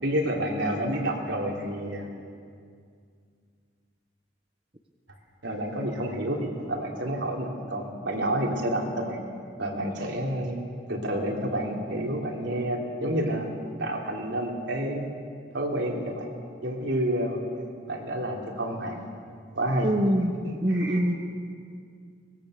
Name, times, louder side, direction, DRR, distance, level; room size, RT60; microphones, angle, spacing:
voice 1, 0.0-2.1 5.4-9.2 9.6-10.6 10.9-13.5 13.8-15.1 15.5-16.3 16.6-17.4 17.9-19.0 19.5-19.9 20.7-21.0, right 1 dB, 75° right, -1 dB, 3.6 m, -29 dB
voice 2, 19.8-20.3 20.6-21.2, equal, 30° right, 3 dB, 1.1 m, -24 dB
24.0 x 20.0 x 6.7 m, 2.2 s
head